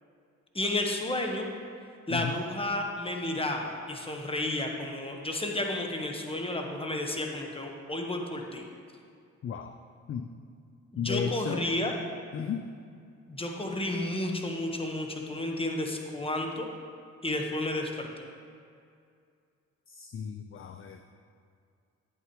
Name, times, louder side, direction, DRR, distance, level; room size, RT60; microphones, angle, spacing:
voice 1, 0.5-1.5 2.1-8.7 10.9-11.9 13.3-16.7 17.2-18.1, left 1 dB, 15° left, 2 dB, 1.3 m, -32 dB
voice 2, 9.4-9.8 10.1-10.3 11.0-11.7 12.3-12.7 19.9-21.0, left 7 dB, 40° left, 7 dB, 0.5 m, -34 dB
9.5 x 8.3 x 3.2 m, 2.3 s
supercardioid pair, 55°, 34 cm